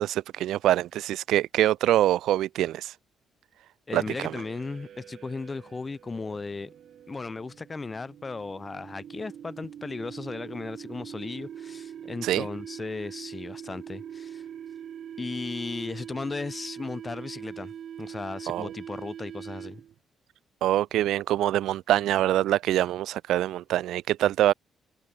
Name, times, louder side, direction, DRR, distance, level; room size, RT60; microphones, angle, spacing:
voice 1, 0.0-2.9 3.9-4.0 12.2-12.5 18.5-18.7 20.6-24.5, right 13 dB, 80° right, 0.4 m, -24 dB
voice 2, 3.9-6.7 7.1-14.4 15.2-19.8, left 3 dB, 25° left, 5.2 m, -36 dB
sound 1, 4.1-20.0, right 9 dB, 65° right, 0.9 m, -43 dB
cardioid pair, 90°, 0 cm